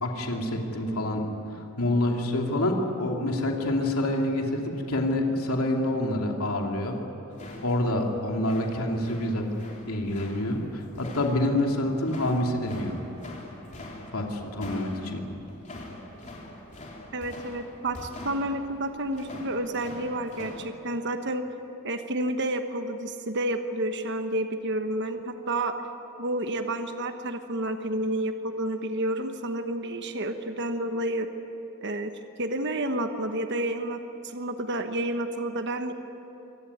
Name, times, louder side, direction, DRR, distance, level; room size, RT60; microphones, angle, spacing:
voice 1, 0.0-1.3 1.8-7.0 7.6-9.5 9.9-13.0 14.1-15.3, left 1 dB, 85° left, 1 dB, 2.7 m, -27 dB
sound 1, 7.3-20.6, left 1 dB, 35° left, 3.4 m, -44 dB
voice 2, 17.1-21.4 21.8-25.8 26.2-31.3 31.8-32.1 32.4-35.9, right 1 dB, 55° right, 7 dB, 1.2 m, -30 dB
25.0 x 18.0 x 9.5 m, 2.9 s
head